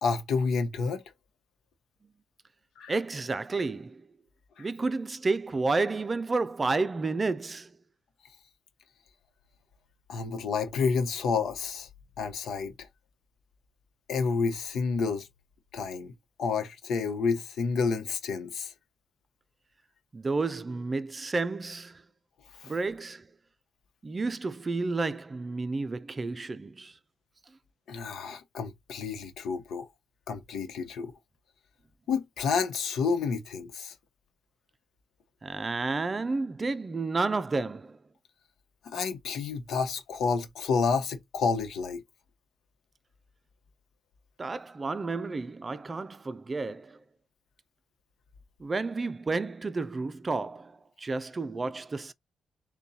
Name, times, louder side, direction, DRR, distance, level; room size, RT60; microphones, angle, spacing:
voice 1, 0.0-1.0 2.8-3.0 4.6-4.7 10.1-11.9 12.2-12.7 14.1-15.3 15.7-16.1 16.4-18.7 22.6-22.7 27.9-29.9 30.3-31.1 32.1-33.9 38.8-42.0, left 5 dB, 80° left, 0.9 m, -29 dB
voice 2, 2.9-4.0 4.6-7.7 20.1-22.0 22.6-23.3 24.0-26.9 35.4-38.0 44.4-47.0 48.6-52.1, right 3 dB, 30° right, 0.4 m, -31 dB
6.7 x 2.3 x 2.8 m
cardioid pair, 105°, 0 cm